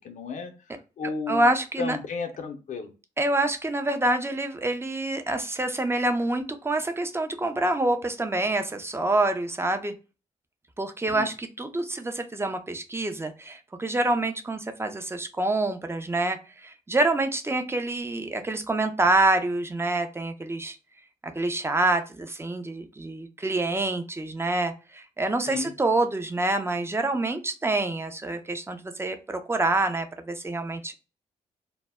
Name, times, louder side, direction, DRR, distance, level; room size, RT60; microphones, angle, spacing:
voice 1, 0.0-0.5 1.0-1.5 1.8-2.9 11.1-11.3 25.5-25.7, left 4 dB, 55° left, 4 dB, 0.6 m, -33 dB
voice 2, 1.3-2.0 3.2-9.9 10.8-20.8 21.4-30.9, right 2 dB, 15° right, 7 dB, 0.5 m, -26 dB
2.1 x 2.0 x 3.4 m, 0.32 s
hypercardioid pair, 45°, 16 cm